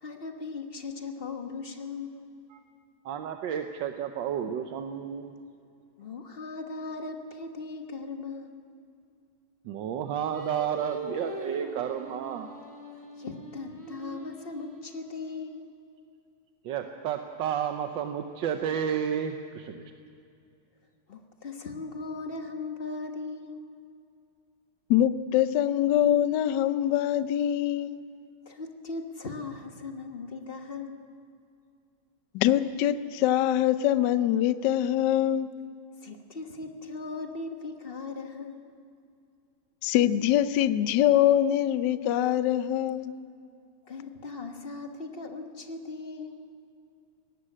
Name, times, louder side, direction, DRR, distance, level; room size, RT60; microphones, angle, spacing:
voice 1, 0.0-2.3 6.0-8.6 13.2-15.7 21.1-23.8 28.4-31.1 36.0-38.7 43.8-46.5, left 3 dB, 35° left, 5 dB, 1.1 m, -38 dB
voice 2, 3.0-5.3 9.6-12.5 16.6-19.8, right 8 dB, 65° right, 6 dB, 1.4 m, -31 dB
Singing, 10.3-15.6, right 1 dB, 10° right, 1.7 m, -42 dB
voice 3, 24.9-28.0 32.3-35.5 39.8-43.1, left 11 dB, 70° left, 13 dB, 1.1 m, -24 dB
18.0 x 15.0 x 9.8 m, 2.5 s
omnidirectional pair, 2.4 m